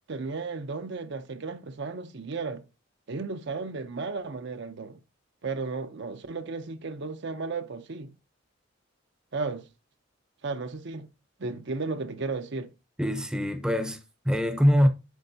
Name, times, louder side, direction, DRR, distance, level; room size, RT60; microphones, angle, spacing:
voice 1, 0.1-2.6 3.1-5.0 5.4-8.1 9.3-9.7 10.4-11.1 11.4-12.7, right 4 dB, 60° right, 0.6 m, -34 dB
voice 2, 13.0-14.9, equal, 5° right, 0.7 m, -24 dB
8.1 x 7.0 x 2.7 m
head